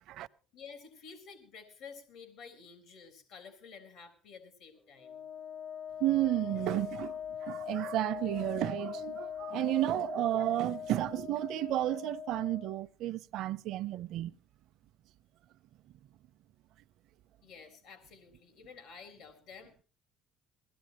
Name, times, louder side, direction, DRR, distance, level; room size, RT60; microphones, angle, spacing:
voice 1, 0.5-5.2 17.4-19.8, left 5 dB, 75° left, 3.7 m, -51 dB
Wind instrument woodwind instrument, 5.0-12.8, left 8 dB, 30° left, 0.7 m, -41 dB
voice 2, 6.0-14.3, right 14 dB, 65° right, 0.6 m, -32 dB
21.0 x 17.0 x 3.1 m
cardioid pair, 125°, 0 cm